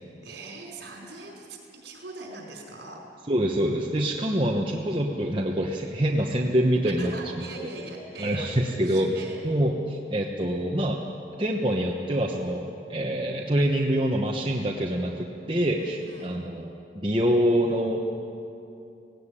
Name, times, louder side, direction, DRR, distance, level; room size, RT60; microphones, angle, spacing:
voice 1, 0.0-3.0 7.0-9.4 15.8-16.4, right 2 dB, 70° right, -1 dB, 4.5 m, -41 dB
voice 2, 3.3-7.7 8.2-9.1 9.4-11.0 11.4-18.2, equal, 25° right, -1 dB, 1.1 m, -26 dB
17.5 x 17.0 x 9.8 m, 2.7 s
head